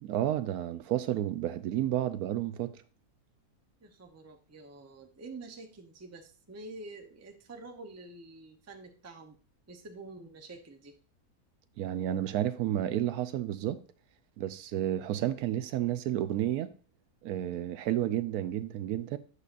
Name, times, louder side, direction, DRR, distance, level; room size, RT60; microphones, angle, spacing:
voice 1, 0.0-2.7 11.8-13.8 14.4-16.7 17.2-19.2, right 12 dB, 80° right, 1.1 m, -31 dB
voice 2, 3.8-9.4 9.7-11.0, right 2 dB, 20° right, 0.4 m, -47 dB
8.3 x 6.6 x 2.5 m
omnidirectional pair, 1.6 m